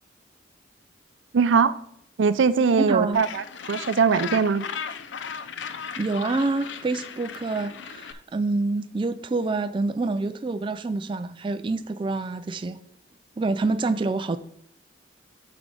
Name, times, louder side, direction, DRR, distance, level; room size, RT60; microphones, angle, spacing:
voice 1, 1.3-1.7 2.2-4.6, right 5 dB, 90° right, 0.5 m, -21 dB
voice 2, 2.8-3.2 6.0-12.8 13.4-14.4, right 3 dB, 25° right, 0.3 m, -27 dB
Gull seagull, 3.1-8.1, left 7 dB, 75° left, 0.6 m, -36 dB
6.0 x 5.7 x 5.1 m
head